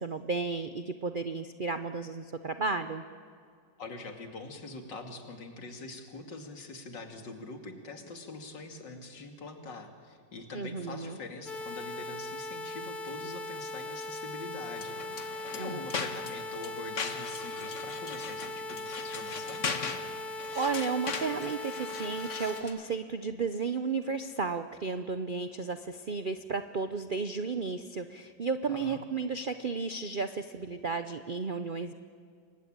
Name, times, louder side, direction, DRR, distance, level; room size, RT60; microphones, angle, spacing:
voice 1, 0.0-3.0 10.5-11.2 15.6-15.8 20.5-31.9, right 4 dB, 65° right, 9 dB, 0.5 m, -33 dB
voice 2, 3.8-19.6 28.7-29.0, left 3 dB, 65° left, 4 dB, 3.1 m, -44 dB
sound 1, 11.5-22.6, left 2 dB, 25° left, 3.2 m, -39 dB
sound 2, 14.7-22.9, left 5 dB, 40° left, 1.6 m, -39 dB
28.5 x 23.5 x 8.8 m, 2.2 s
omnidirectional pair, 2.1 m